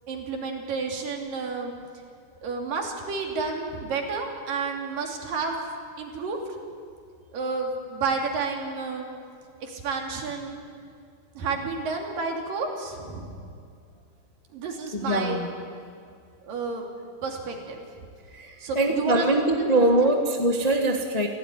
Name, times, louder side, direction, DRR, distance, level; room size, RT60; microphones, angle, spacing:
voice 1, 0.1-1.7 2.4-5.6 6.0-6.4 7.3-9.1 9.6-10.6 11.4-13.5 14.5-15.4 16.4-16.9 17.2-17.8 18.6-19.3 19.6-20.1, right 4 dB, 65° right, 2 dB, 4.4 m, -31 dB
voice 2, 14.9-15.5 18.3-21.3, right 1 dB, 30° left, 2 dB, 0.7 m, -23 dB
27.5 x 16.5 x 9.8 m, 2.3 s
omnidirectional pair, 4.3 m